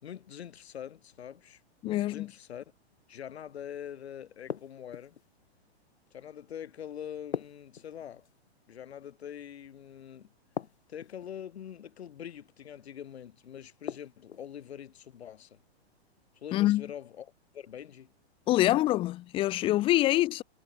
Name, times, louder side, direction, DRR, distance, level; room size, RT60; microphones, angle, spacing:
voice 1, 0.0-2.6 3.1-5.2 6.1-8.3 8.7-10.3 10.9-15.6 16.3-18.1 20.0-20.1, left 9 dB, 75° left, 5.6 m, -44 dB
voice 2, 1.8-2.3 16.5-16.8 18.5-20.4, left 15 dB, 15° left, 0.7 m, -25 dB
sound 1, 4.5-5.3 7.3-8.4 10.6-11.3 13.9-14.5, left 8 dB, 90° left, 3.7 m, -39 dB
hypercardioid pair, 150°, 32 cm